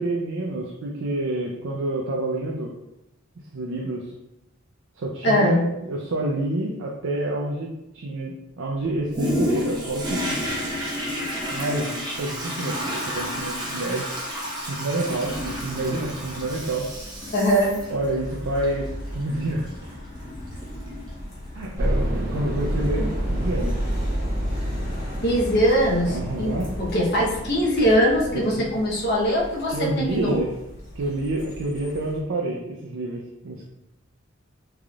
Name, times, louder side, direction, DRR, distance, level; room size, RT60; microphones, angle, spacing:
voice 1, 0.0-2.7 3.5-4.1 5.0-7.7 7.9-10.5 11.5-11.9 12.2-14.1 14.7-16.9 17.9-19.9 21.5-23.8 26.1-26.7 28.6-28.7 29.7-30.5 31.0-33.7, right 2 dB, 80° right, -1 dB, 0.5 m, -28 dB
voice 2, 5.2-5.7 17.3-17.8 23.0-23.1 25.2-30.4, equal, 55° left, -4 dB, 0.8 m, -21 dB
Toilet flush, 9.1-21.6 22.1-22.2, equal, 20° right, 0.8 m, -31 dB
sound 1, 15.1-32.2, equal, 80° left, 1.4 m, -35 dB
sound 2, 21.8-28.5, equal, 50° right, 0.8 m, -30 dB
3.7 x 3.4 x 2.3 m, 0.91 s
head